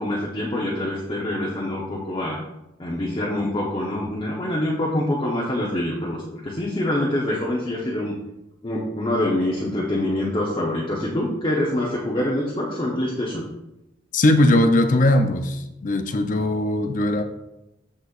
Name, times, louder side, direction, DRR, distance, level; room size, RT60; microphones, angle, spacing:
voice 1, 0.0-2.4 2.8-8.2 8.6-13.5, left 1 dB, 30° left, -5 dB, 1.0 m, -25 dB
voice 2, 14.1-17.2, left 1 dB, 45° left, 7 dB, 0.5 m, -19 dB
13.0 x 4.4 x 2.5 m, 0.90 s
head